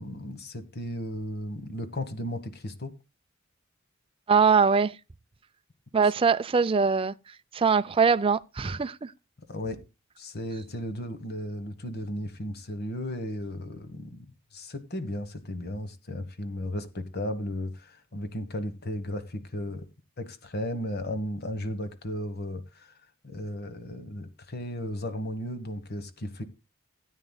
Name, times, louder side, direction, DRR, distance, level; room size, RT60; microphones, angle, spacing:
voice 1, 0.0-2.9 6.0-6.1 9.4-9.8 10.2-19.8 20.2-22.9 23.2-26.4, left 1 dB, 50° left, 1.4 m, -35 dB
voice 2, 4.3-4.9 5.9-7.1 7.5-9.1, right 5 dB, 25° right, 0.4 m, -22 dB
17.0 x 9.1 x 2.3 m
head